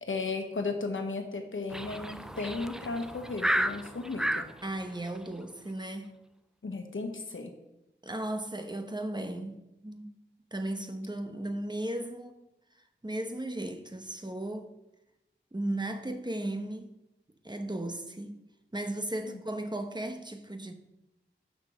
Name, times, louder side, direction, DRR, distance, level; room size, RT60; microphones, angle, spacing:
voice 1, 0.0-4.5 6.6-7.5 19.2-19.4, left 3 dB, 80° left, 1.1 m, -35 dB
sound 1, 1.7-4.5, equal, 5° right, 0.4 m, -32 dB
voice 2, 4.6-6.1 8.0-10.1 10.5-12.3 13.0-14.7 15.5-16.9 17.4-18.4 18.7-20.7, right 1 dB, 20° right, 0.9 m, -35 dB
6.3 x 6.0 x 6.2 m
wide cardioid pair, 50°, 20 cm